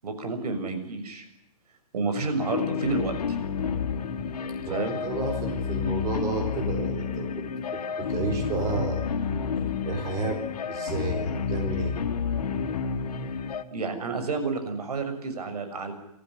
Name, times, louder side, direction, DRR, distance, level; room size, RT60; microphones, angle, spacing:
voice 1, 0.0-1.3 1.9-3.1 4.6-5.0 13.7-15.9, right 3 dB, 85° right, 8 dB, 6.8 m, -30 dB
sound 1, 2.4-13.6, left 6 dB, 90° left, 2.8 m, -30 dB
voice 2, 4.6-7.4 7.7-9.0 9.8-10.4 10.7-12.0, right 3 dB, 20° right, 3 dB, 4.0 m, -32 dB
28.5 x 14.5 x 9.8 m, 0.85 s
hypercardioid pair, 170°, 19 cm